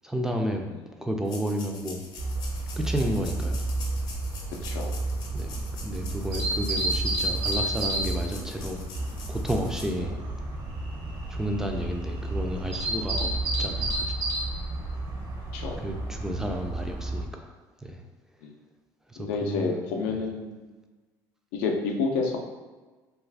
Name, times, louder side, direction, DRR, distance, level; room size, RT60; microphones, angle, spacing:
voice 1, 0.0-0.6 1.0-2.1 2.8-3.6 5.3-8.8 9.3-10.2 11.3-13.3 13.6-14.2 15.8-17.5 17.8-18.0 19.1-19.8 20.1-20.2, equal, 5° right, 2 dB, 0.3 m, -31 dB
sound 1, 1.3-9.8, left 3 dB, 55° left, 0.7 m, -45 dB
sound 2, 2.2-17.2, right 2 dB, 50° right, 0.7 m, -31 dB
voice 2, 4.6-4.9 10.0-10.1 15.5-15.8 18.4-18.5 19.2-20.7 21.5-22.4, left 4 dB, 90° left, 1 dB, 0.5 m, -29 dB
sound 3, 8.9-14.0, right 2 dB, 85° right, 0.5 m, -41 dB
2.4 x 2.3 x 3.3 m, 1.3 s
supercardioid pair, 105°, 9 cm